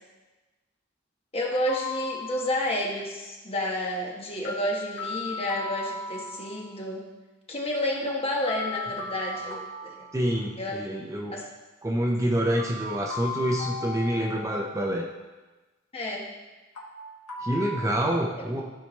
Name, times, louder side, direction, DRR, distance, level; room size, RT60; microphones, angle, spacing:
voice 1, 1.3-7.0 7.5-10.0 10.6-10.8 11.3-11.5 15.9-16.3 18.5-18.6, left 1 dB, 30° left, -2 dB, 1.4 m, -30 dB
sound 1, 1.7-2.8 4.5-6.8 8.5-10.8 12.6-14.9 16.8-17.8, left 3 dB, 80° left, 1.5 m, -37 dB
voice 2, 10.1-11.4 11.8-15.1 17.4-18.6, right 1 dB, 15° right, 0 dB, 0.6 m, -27 dB
13.5 x 4.6 x 3.2 m, 1.2 s
head